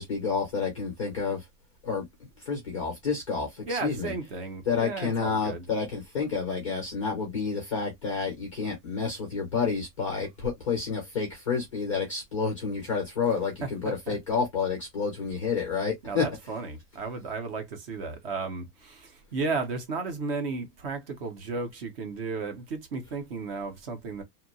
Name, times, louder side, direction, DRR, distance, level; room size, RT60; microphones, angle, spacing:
voice 1, 0.0-1.4 1.8-2.0 2.4-4.1 4.7-16.3, left 5 dB, 25° left, 0.3 m, -29 dB
voice 2, 3.7-5.6 13.6-14.2 16.0-24.2, right 4 dB, 40° right, 0.5 m, -34 dB
2.7 x 2.1 x 2.5 m
supercardioid pair, 170°, 48 cm